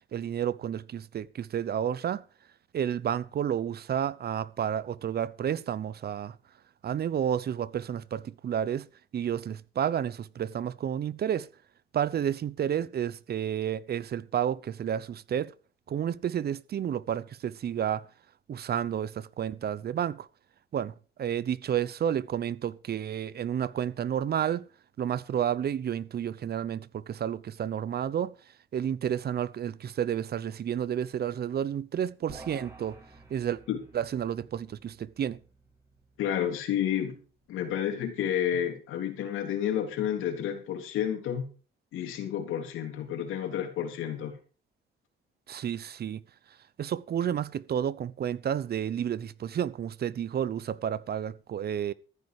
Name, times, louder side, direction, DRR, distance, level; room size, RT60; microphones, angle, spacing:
voice 1, 0.1-2.2 2.7-6.4 6.8-8.9 9.1-11.5 11.9-15.5 15.9-18.0 18.5-20.3 20.7-24.6 25.0-28.3 28.7-33.0 33.3-33.6 33.9-35.4 45.5-46.2 46.8-51.9, right 9 dB, 55° right, 0.8 m, -31 dB
sound 1, 32.3-37.8, right 2 dB, 15° right, 4.9 m, -53 dB
voice 2, 36.2-37.2 37.5-41.4 41.9-44.4, left 10 dB, 85° left, 3.4 m, -30 dB
14.5 x 9.6 x 4.9 m
cardioid pair, 90°, 20 cm